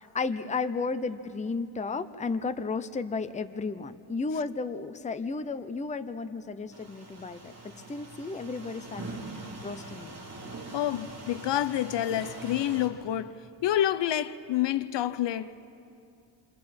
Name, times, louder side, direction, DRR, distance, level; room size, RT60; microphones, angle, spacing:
voice 1, 0.1-7.5 7.9-9.0 9.6-10.1, left 4 dB, 15° left, 0.7 m, -33 dB
sound 1, 6.7-12.9, right 2 dB, 35° right, 3.4 m, -43 dB
voice 2, 10.7-13.3 13.6-15.6, left 12 dB, 65° left, 0.7 m, -28 dB
28.5 x 25.0 x 4.3 m
cardioid pair, 110°, 47 cm